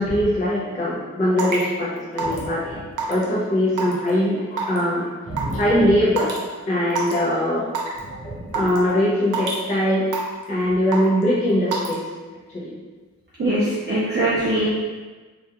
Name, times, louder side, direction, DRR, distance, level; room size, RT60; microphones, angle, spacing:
voice 1, 0.0-6.4 6.7-7.7 8.2-10.1 10.5-12.0 12.5-12.8, left 1 dB, 25° left, -7 dB, 0.5 m, -22 dB
Raindrop / Water tap faucet / Drip, 1.4-1.6 2.2-2.5 3.0-3.2 3.8-4.1 4.6-4.8 5.4-5.5 6.2-6.4 6.9-7.1 7.7-8.0 8.5-8.8 9.3-9.6 10.1-10.4 10.9-11.2 11.7-11.9, right 6 dB, 85° right, 0.5 m, -25 dB
voice 2, 13.4-14.7, right 1 dB, 35° right, -7 dB, 0.4 m, -22 dB
2.3 x 2.2 x 2.7 m, 1.3 s
wide cardioid pair, 105°, 30 cm